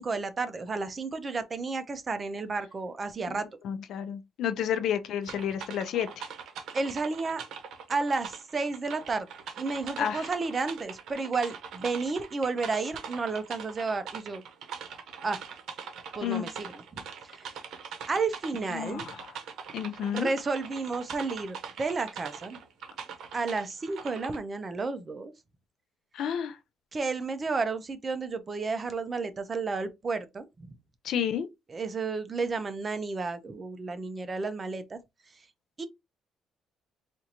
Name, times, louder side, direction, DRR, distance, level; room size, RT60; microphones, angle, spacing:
voice 1, 0.0-3.5 6.7-7.4 7.9-9.3 9.6-14.4 15.2-15.4 16.1-17.0 17.3-17.4 18.1-19.1 20.0-22.6 23.3-25.3 26.9-30.8 31.7-35.0 35.8-35.9, right 4 dB, 25° right, 0.5 m, -32 dB
voice 2, 3.6-6.2 10.0-10.3 16.2-16.5 18.7-19.3 19.7-20.3 26.1-26.6 31.0-31.5, left 9 dB, 65° left, 0.5 m, -31 dB
sound 1, 5.2-24.4, right 6 dB, 65° right, 0.8 m, -42 dB
4.4 x 2.5 x 2.8 m
cardioid pair, 140°, 0 cm